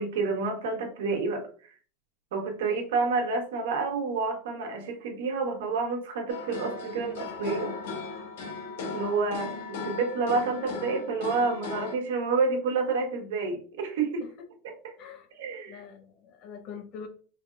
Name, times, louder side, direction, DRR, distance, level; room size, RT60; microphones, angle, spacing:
voice 1, 0.0-1.5 2.3-7.8 8.9-14.2 14.8-14.9 15.4-15.8, right 4 dB, 85° right, 3 dB, 1.3 m, -29 dB
sound 1, 6.3-12.0, left 4 dB, 85° left, 1.1 m, -37 dB
voice 2, 15.7-17.1, left 6 dB, 40° left, 5 dB, 0.9 m, -44 dB
4.5 x 3.4 x 2.5 m, 0.41 s
supercardioid pair, 155°, 0 cm